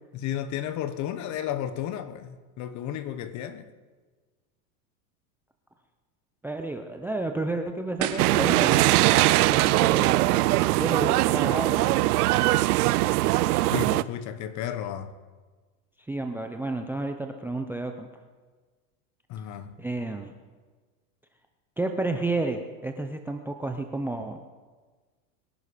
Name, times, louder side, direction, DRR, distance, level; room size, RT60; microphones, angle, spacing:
voice 1, 0.1-3.7 13.7-15.2 19.3-19.7, left 10 dB, 40° left, 1.2 m, -33 dB
voice 2, 6.4-8.8 9.3-10.3 10.7-12.0 16.1-18.1 19.8-20.3 21.8-24.4, right 2 dB, 5° right, 0.6 m, -31 dB
sound 1, 7.1-7.2 8.0-8.4 8.7-10.0 10.5-10.6, right 10 dB, 40° right, 1.7 m, -33 dB
sound 2, 8.2-14.0, right 18 dB, 75° right, 0.6 m, -21 dB
22.5 x 11.0 x 5.1 m
supercardioid pair, 135°, 45 cm